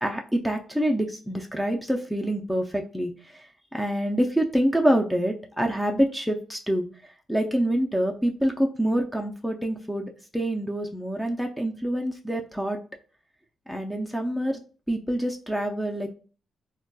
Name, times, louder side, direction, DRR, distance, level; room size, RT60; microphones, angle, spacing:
voice 1, 0.0-3.1 3.7-6.9 7.3-12.8 13.7-14.6 14.9-16.1, right 1 dB, ahead, 2 dB, 0.4 m, -26 dB
3.8 x 2.2 x 2.3 m, 0.37 s
cardioid pair, 110°, 0 cm